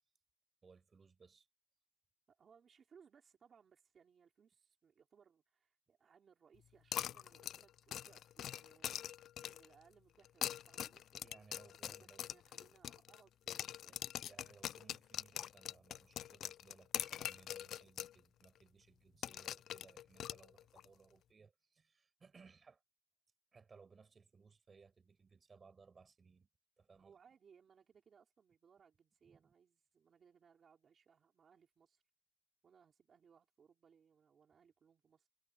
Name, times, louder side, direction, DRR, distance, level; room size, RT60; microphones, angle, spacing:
voice 1, 0.6-1.5 11.2-12.2 13.9-14.0 14.3-22.8 23.5-26.5 26.8-27.2 29.2-29.5, right 5 dB, 35° right, 6.4 m, -64 dB
voice 2, 2.3-14.1 27.0-32.0 32.6-35.3, right 6 dB, 50° right, 3.9 m, -68 dB
sound 1, 6.9-9.7 10.3-13.2 13.5-18.2 18.4-18.5 19.2-20.9, left 11 dB, 85° left, 0.3 m, -43 dB
cardioid pair, 130°, 0 cm